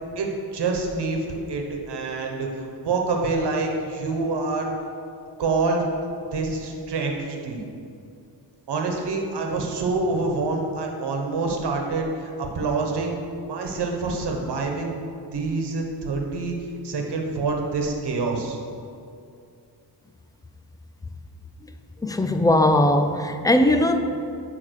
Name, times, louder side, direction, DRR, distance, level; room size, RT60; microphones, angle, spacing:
voice 1, 0.2-4.7 5.4-5.9 6.3-7.6 8.7-13.2 13.4-15.0 15.3-16.6 16.8-18.6, right 3 dB, 70° right, 2 dB, 1.3 m, -26 dB
voice 2, 22.0-24.0, left 1 dB, 10° left, 7 dB, 0.3 m, -19 dB
10.0 x 3.6 x 6.4 m, 2.5 s
wide cardioid pair, 135°, 42 cm